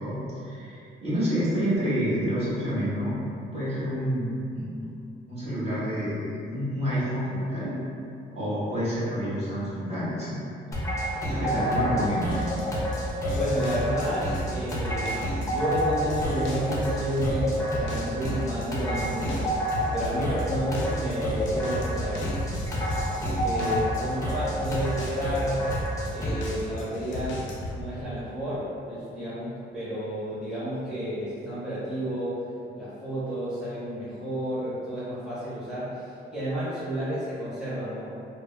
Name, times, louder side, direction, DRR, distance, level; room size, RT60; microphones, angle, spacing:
voice 1, 0.0-3.2 3.5-4.8 5.3-7.7 8.3-10.4 11.3-12.4 23.5-23.7, equal, 30° right, -12 dB, 1.3 m, -28 dB
sound 1, 10.7-26.6, equal, 15° left, 0.6 m, -29 dB
voice 2, 11.2-11.5 13.3-19.5 19.9-22.8 23.2-25.7 26.1-27.4 27.7-32.4 32.7-38.1, right 1 dB, 5° right, -14 dB, 1.0 m, -31 dB
sound 2, 12.3-27.8, left 1 dB, 75° left, 0.5 m, -37 dB
3.2 x 2.1 x 2.2 m, 2.6 s
cardioid pair, 90°, 20 cm